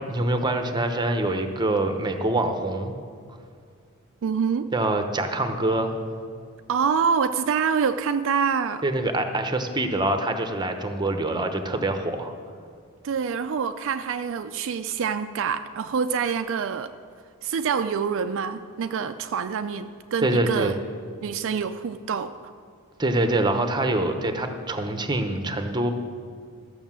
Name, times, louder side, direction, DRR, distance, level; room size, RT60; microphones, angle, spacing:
voice 1, 0.0-2.9 4.7-6.0 8.8-12.3 20.2-20.7 23.0-25.9, right 2 dB, 20° right, 6 dB, 0.8 m, -25 dB
voice 2, 4.2-4.7 6.7-8.8 13.0-16.9 17.4-20.8 21.2-22.5, right 6 dB, 60° right, 9 dB, 0.4 m, -26 dB
13.0 x 6.4 x 7.4 m, 2.2 s
head